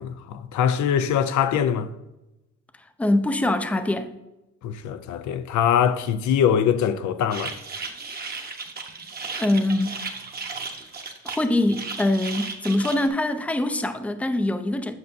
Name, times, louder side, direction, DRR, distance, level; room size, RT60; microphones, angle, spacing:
voice 1, 0.0-1.9 4.6-7.5, left 8 dB, 70° left, 0.5 m, -23 dB
voice 2, 3.0-4.1 9.4-10.0 11.2-14.9, left 1 dB, 5° left, 0.5 m, -23 dB
sound 1, 7.3-13.1, right 4 dB, 30° right, 1.0 m, -35 dB
7.9 x 6.5 x 2.6 m
cardioid pair, 90°, 30 cm